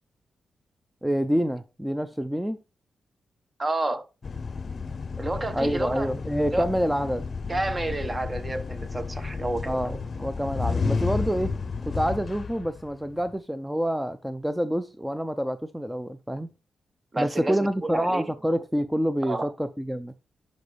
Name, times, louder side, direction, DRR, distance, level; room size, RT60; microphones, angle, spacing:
voice 1, 1.0-2.6 5.5-7.2 9.6-11.5 11.9-16.5 17.2-20.1, equal, 5° right, 0.6 m, -27 dB
voice 2, 3.6-4.1 5.2-6.1 6.5-6.7 7.5-10.0 17.1-18.2 19.2-19.5, right 2 dB, 30° right, 1.0 m, -30 dB
sound 1, 4.2-13.3, left 4 dB, 50° left, 0.6 m, -32 dB
10.5 x 5.2 x 3.4 m
cardioid pair, 65°, 0 cm